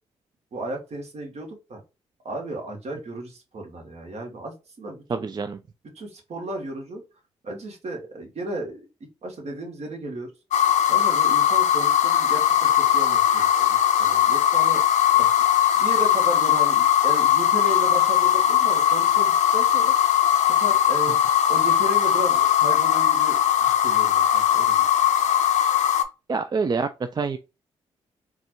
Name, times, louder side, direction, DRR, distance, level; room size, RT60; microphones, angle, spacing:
voice 1, 0.5-1.8 2.2-5.3 5.9-7.0 7.4-8.9 9.2-10.3 10.9-14.8 15.2-15.3 15.7-20.2 20.4-24.9, right 1 dB, 55° right, 1.3 m, -34 dB
voice 2, 5.1-5.6 26.3-27.4, right 4 dB, 35° right, 0.4 m, -26 dB
sound 1, 10.5-26.0, left 10 dB, 70° left, 0.5 m, -20 dB
3.9 x 2.4 x 2.9 m
supercardioid pair, 50°, 13 cm